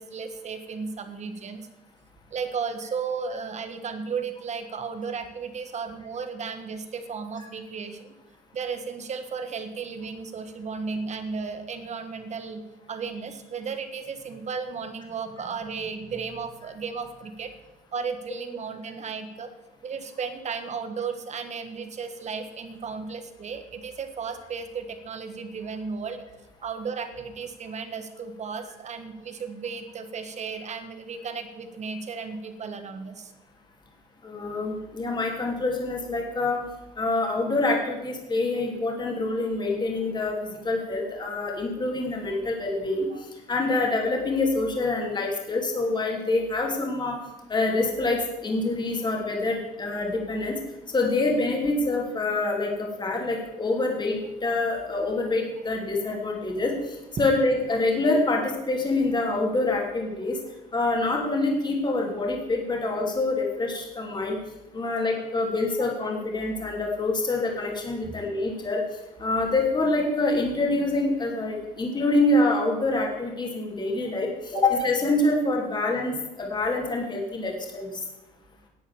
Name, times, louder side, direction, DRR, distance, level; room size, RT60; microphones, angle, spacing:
voice 1, 0.0-1.7 2.3-8.1 8.5-12.6 12.9-17.5 17.9-19.5 19.8-26.2 26.6-33.3 43.1-43.2 68.0-68.1 74.5-74.6, right 5 dB, 40° right, 8 dB, 1.6 m, -34 dB
voice 2, 34.2-36.6 37.0-40.3 40.6-43.1 43.5-47.2 47.5-50.6 50.9-56.7 57.2-58.4 58.7-60.4 60.7-64.4 64.7-68.8 69.2-78.0, left 2 dB, 25° left, 0 dB, 2.9 m, -26 dB
10.5 x 8.4 x 7.3 m, 1.0 s
cardioid pair, 110°, 17 cm